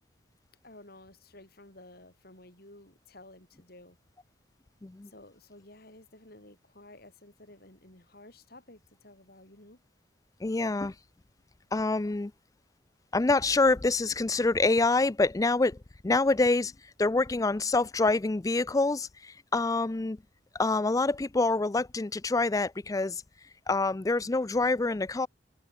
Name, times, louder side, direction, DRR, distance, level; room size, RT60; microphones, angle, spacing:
voice 1, 0.6-4.0 5.1-9.8, left 2 dB, 55° left, 6.9 m, -53 dB
voice 2, 10.4-10.9 11.7-12.3 13.1-15.8 16.0-16.7 17.0-20.2 20.6-23.2 23.7-25.3, left 3 dB, 20° left, 0.4 m, -26 dB
head